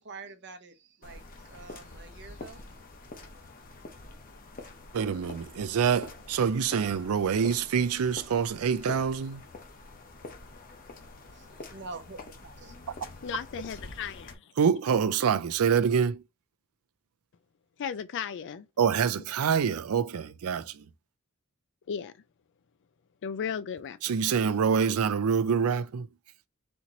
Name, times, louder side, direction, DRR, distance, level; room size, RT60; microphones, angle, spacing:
voice 1, 0.0-2.6 11.3-12.7, right 3 dB, 55° right, 0.9 m, -46 dB
sound 1, 1.0-14.3, left 2 dB, 40° left, 0.9 m, -46 dB
voice 2, 4.9-9.4 14.6-16.2 18.8-20.8 24.0-26.1, right 6 dB, 80° right, 0.4 m, -26 dB
voice 3, 13.2-14.5 17.8-18.7 21.9-22.1 23.2-24.1, left 7 dB, 55° left, 0.4 m, -35 dB
4.3 x 3.0 x 3.8 m
head